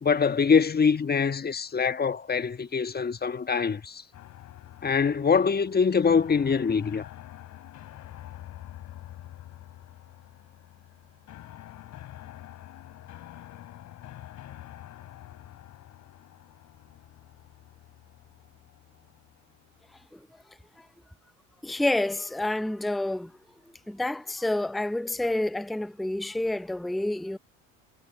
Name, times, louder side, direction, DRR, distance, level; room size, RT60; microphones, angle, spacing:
voice 1, 0.0-4.0 4.8-7.1, left 5 dB, 25° left, 1.5 m, -24 dB
sound 1, 4.1-20.1, left 13 dB, 50° left, 2.9 m, -47 dB
voice 2, 21.6-23.3 23.9-27.4, left 1 dB, ahead, 0.7 m, -28 dB
figure-of-eight pair, 60°, 37 cm